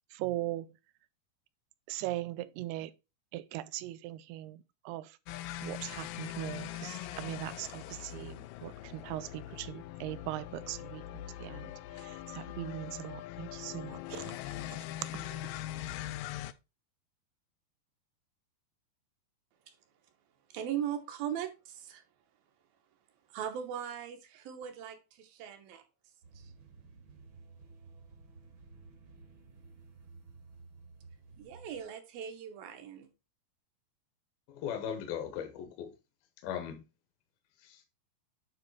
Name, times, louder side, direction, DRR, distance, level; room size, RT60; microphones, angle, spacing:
voice 1, 0.1-0.7 1.9-2.9 3.3-5.2 5.6-14.4 14.7-14.8 15.1-15.4, right 15 dB, 90° right, 2.6 m, -40 dB
sound 1, 5.3-16.5, left 14 dB, 90° left, 1.9 m, -42 dB
voice 2, 20.5-22.0 23.3-25.8 26.4-26.5 31.4-33.1, right 9 dB, 75° right, 2.6 m, -39 dB
sound 2, 26.2-31.8, right 4 dB, 55° right, 1.4 m, -54 dB
voice 3, 34.5-35.9 36.4-36.8 37.6-37.8, left 8 dB, 75° left, 2.6 m, -38 dB
9.3 x 3.6 x 4.5 m
omnidirectional pair, 4.5 m